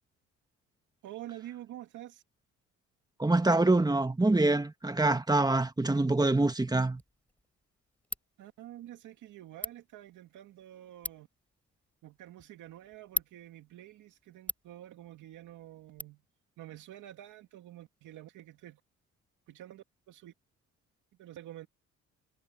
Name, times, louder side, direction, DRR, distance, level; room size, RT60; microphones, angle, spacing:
voice 1, 1.0-2.2 8.4-11.3 12.0-16.2 16.6-18.8 19.5-20.3 21.2-21.7, right 13 dB, 85° right, 2.3 m, -48 dB
voice 2, 3.2-7.0, right 2 dB, 15° right, 1.6 m, -25 dB
Ratchet pawl, 6.9-16.0, left 1 dB, 5° left, 5.7 m, -44 dB
cardioid pair, 90°, 30 cm